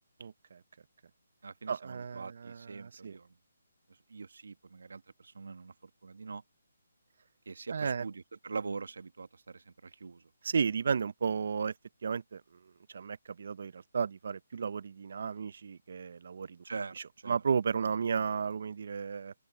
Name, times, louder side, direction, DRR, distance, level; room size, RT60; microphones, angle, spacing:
voice 1, 0.2-0.6 1.7-3.1 7.7-8.1 10.4-11.7 12.0-12.4 12.9-16.6 17.3-19.3, right 6 dB, 60° right, 0.7 m, -33 dB
voice 2, 1.4-3.4 4.1-6.4 7.5-10.3 16.6-17.4, right 4 dB, 80° right, 2.0 m, -43 dB
hypercardioid pair, 160°, 0 cm